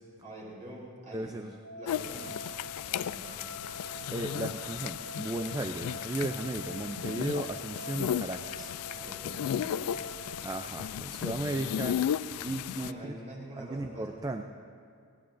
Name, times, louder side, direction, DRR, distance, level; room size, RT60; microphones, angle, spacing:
voice 1, 0.2-1.3 1.7-2.5 2.9-3.5 8.9-10.0 11.1-11.8 12.7-14.4, right 1 dB, 35° right, -5 dB, 3.8 m, -46 dB
voice 2, 1.1-1.5 4.1-8.7 10.4-12.0 12.4-13.2 13.6-14.4, right 2 dB, 15° right, 5 dB, 0.4 m, -35 dB
sound 1, 1.6-10.3, left 1 dB, 55° right, 2.1 m, -46 dB
sound 2, 1.9-12.9, left 9 dB, 75° left, 0.3 m, -35 dB
19.5 x 15.5 x 2.6 m, 2.3 s
head